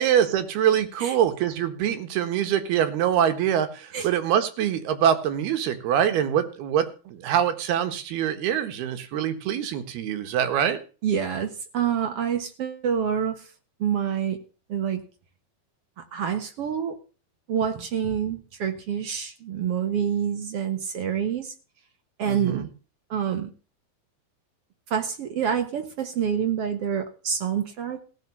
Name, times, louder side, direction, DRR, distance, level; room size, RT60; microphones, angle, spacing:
voice 1, 0.0-10.8 22.3-22.7, right 9 dB, 80° right, 9 dB, 3.4 m, -24 dB
voice 2, 11.0-13.4 13.8-14.4 14.7-15.0 16.0-17.0 17.5-21.5 22.2-22.7 23.1-23.5 24.9-28.0, right 8 dB, 65° right, 7 dB, 1.5 m, -27 dB
16.0 x 7.2 x 6.9 m, 0.36 s
omnidirectional pair, 4.5 m